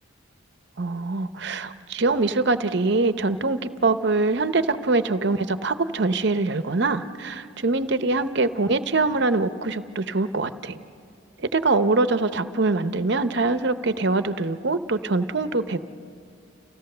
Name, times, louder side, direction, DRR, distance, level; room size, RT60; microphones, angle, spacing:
voice 1, 0.8-10.8 11.4-15.8, right 3 dB, 55° right, 11 dB, 0.7 m, -23 dB
29.0 x 16.0 x 6.7 m, 2.3 s
head